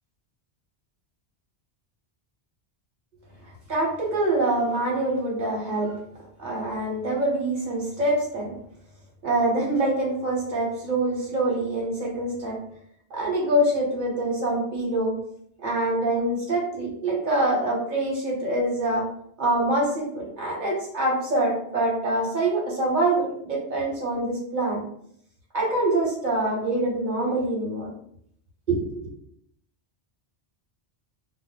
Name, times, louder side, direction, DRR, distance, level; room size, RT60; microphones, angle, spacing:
voice 1, 3.7-6.0 6.4-8.5 9.2-12.6 13.1-15.1 15.6-19.0 19.4-24.8 25.5-27.9 28.7-29.1, right 1 dB, 45° right, -3 dB, 1.0 m, -25 dB
2.3 x 2.0 x 3.8 m, 0.69 s
omnidirectional pair, 1.1 m